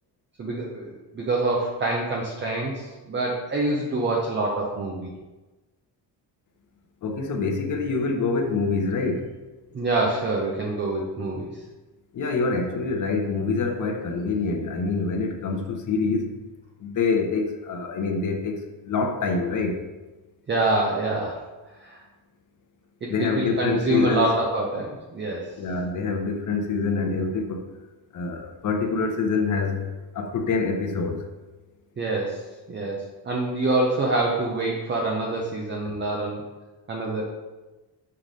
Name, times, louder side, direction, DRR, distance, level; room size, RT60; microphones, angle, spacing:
voice 1, 0.4-5.1 9.7-11.5 20.5-21.4 21.8-22.0 23.0-25.5 32.0-32.4 32.7-36.4 36.9-37.3, right 2 dB, 25° right, -2 dB, 0.6 m, -26 dB
voice 2, 7.0-9.3 12.1-16.4 16.8-19.8 23.1-24.3 25.6-27.7 28.1-29.9 30.1-31.2, left 4 dB, 45° left, 4 dB, 0.8 m, -26 dB
5.7 x 3.3 x 5.2 m, 1.2 s
cardioid pair, 165°, 42 cm